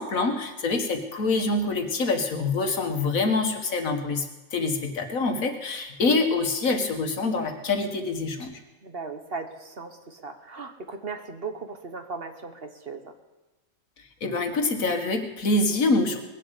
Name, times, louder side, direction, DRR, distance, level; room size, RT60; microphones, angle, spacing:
voice 1, 0.0-4.3 4.5-8.5 14.2-16.2, left 3 dB, 75° left, 5 dB, 1.9 m, -25 dB
voice 2, 8.8-13.1, right 4 dB, 45° right, 6 dB, 1.3 m, -37 dB
20.0 x 7.6 x 8.2 m, 1.1 s
omnidirectional pair, 1.4 m